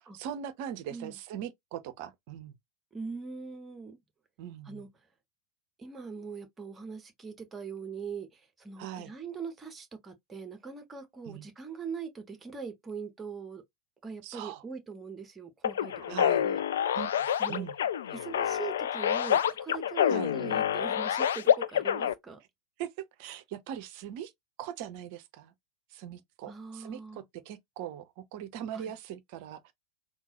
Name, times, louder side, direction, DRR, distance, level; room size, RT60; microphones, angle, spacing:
voice 1, 0.0-2.5 4.4-4.8 8.8-9.1 11.3-11.5 14.2-14.6 16.1-16.5 16.9-17.7 20.1-20.3 22.8-24.3 24.6-25.5 25.9-29.7, right 10 dB, 45° right, 0.6 m, -40 dB
voice 2, 2.9-4.0 4.6-4.9 5.8-13.6 14.0-16.6 17.4-17.7 18.1-22.4 26.5-27.2 28.7-28.9, right 5 dB, 15° right, 1.0 m, -42 dB
sound 1, 15.6-22.1, left 9 dB, 60° left, 0.3 m, -27 dB
3.7 x 2.4 x 2.9 m
figure-of-eight pair, 90°, 0 cm